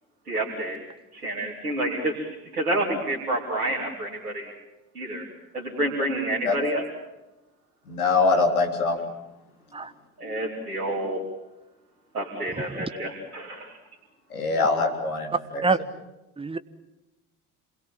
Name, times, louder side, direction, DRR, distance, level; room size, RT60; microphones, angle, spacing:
voice 1, 0.3-0.8 1.1-4.5 5.0-5.3 5.5-6.8 10.2-11.2 12.1-13.7, right 1 dB, 85° right, -4 dB, 3.5 m, -29 dB
voice 2, 7.9-9.0 14.3-15.6, left 3 dB, 75° left, 2 dB, 3.9 m, -23 dB
voice 3, 9.7-9.9 12.6-12.8 15.6-15.8 16.4-16.6, right 3 dB, 10° right, 14 dB, 1.3 m, -25 dB
27.5 x 21.5 x 7.5 m, 1.0 s
figure-of-eight pair, 55°, 44 cm